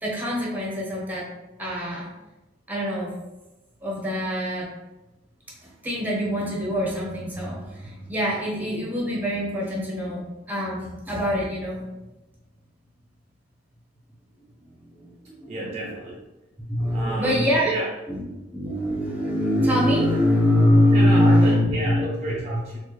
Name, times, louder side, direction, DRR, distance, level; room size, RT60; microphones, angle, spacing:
voice 1, 0.0-1.3 1.6-2.1 2.7-3.1 3.8-4.7 5.6-11.8 14.8-14.9 15.2-15.7 16.7-17.7 18.1-18.2 18.5-22.4, left 1 dB, 10° right, -4 dB, 0.8 m, -23 dB
voice 2, 15.5-16.2 16.9-17.9 20.9-22.8, right 2 dB, 35° right, -4 dB, 0.5 m, -31 dB
4.2 x 2.4 x 3.0 m, 1.0 s
head